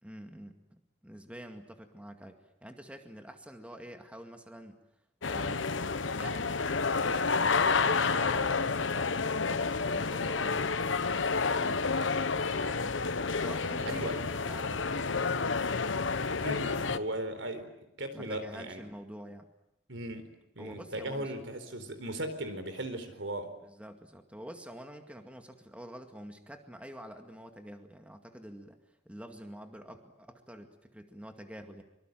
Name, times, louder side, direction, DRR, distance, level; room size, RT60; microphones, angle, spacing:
voice 1, 0.0-4.8 5.3-10.7 11.6-13.0 13.3-15.9 16.7-17.1 18.1-19.5 20.6-21.3 23.6-31.8, equal, 5° right, 5 dB, 2.1 m, -47 dB
Bus Station, 5.2-17.0, left 4 dB, 85° left, 1.2 m, -30 dB
voice 2, 13.9-14.2 16.4-17.7 18.0-18.8 19.9-20.3 20.6-23.5, right 1 dB, 70° right, 10 dB, 4.3 m, -37 dB
25.0 x 25.0 x 9.2 m, 0.81 s
head